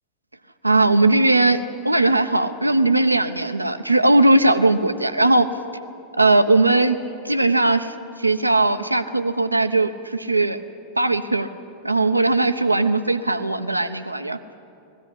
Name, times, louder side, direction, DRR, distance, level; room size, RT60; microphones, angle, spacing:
voice 1, 0.6-5.5 6.2-7.0 7.2-10.6 11.0-11.5 11.8-14.4, right 2 dB, 85° right, 10 dB, 0.8 m, -19 dB
20.5 x 15.5 x 10.0 m, 2.7 s
figure-of-eight pair, 90°, 0 cm